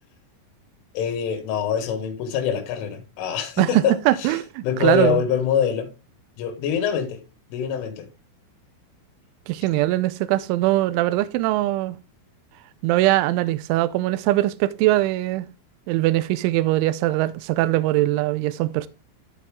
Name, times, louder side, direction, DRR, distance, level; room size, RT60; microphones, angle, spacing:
voice 1, 1.0-4.0 4.6-5.9 6.4-7.2 7.5-8.1, left 8 dB, 80° left, 3.9 m, -24 dB
voice 2, 3.6-5.2 9.5-12.0 12.8-15.5 15.9-18.9, right 16 dB, 85° right, 2.9 m, -21 dB
13.0 x 4.6 x 3.6 m
omnidirectional pair, 5.6 m